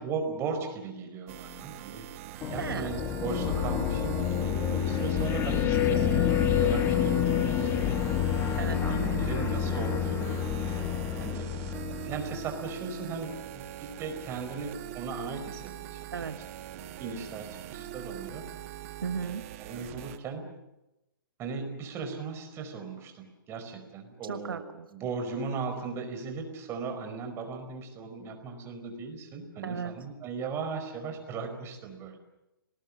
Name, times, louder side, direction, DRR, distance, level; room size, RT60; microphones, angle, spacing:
voice 1, 0.0-2.0 2.5-7.7 8.0-8.2 8.6-10.9 11.2-11.5 12.0-16.1 16.7-18.5 19.6-20.5 21.4-24.6 24.9-32.2, right 4 dB, 20° right, 6 dB, 4.8 m, -37 dB
sound 1, 1.3-20.2, right 13 dB, 40° right, 1.6 m, -42 dB
sound 2, 2.4-12.6, left 9 dB, 20° left, 2.1 m, -28 dB
voice 2, 2.6-3.0 8.6-9.7 16.1-16.4 19.0-19.4 24.3-24.9 29.6-29.9, right 6 dB, 75° right, 9 dB, 1.4 m, -36 dB
29.5 x 19.5 x 7.5 m, 0.95 s
hypercardioid pair, 135°, 12 cm